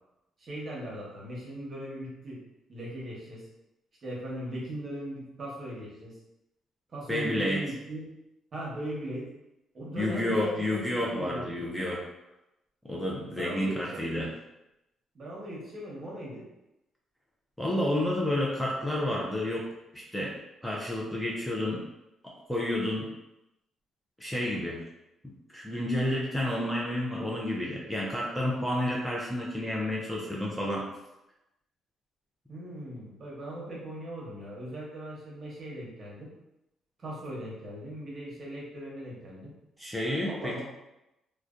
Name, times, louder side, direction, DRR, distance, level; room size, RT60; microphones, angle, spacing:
voice 1, 0.4-2.4 2.7-3.5 4.0-6.2 6.9-8.1 8.5-9.3 9.7-11.6 13.3-14.3 15.1-16.4 32.5-36.3 37.0-39.5 40.2-40.6, right 1 dB, 45° right, -5 dB, 1.0 m, -39 dB
voice 2, 7.1-7.6 10.0-12.0 12.9-14.3 17.6-19.7 19.9-21.8 22.2-23.1 24.2-24.8 25.2-30.9 39.8-40.6, left 1 dB, 5° left, -4 dB, 0.5 m, -30 dB
2.5 x 2.1 x 2.4 m, 0.91 s
cardioid pair, 90°, 0 cm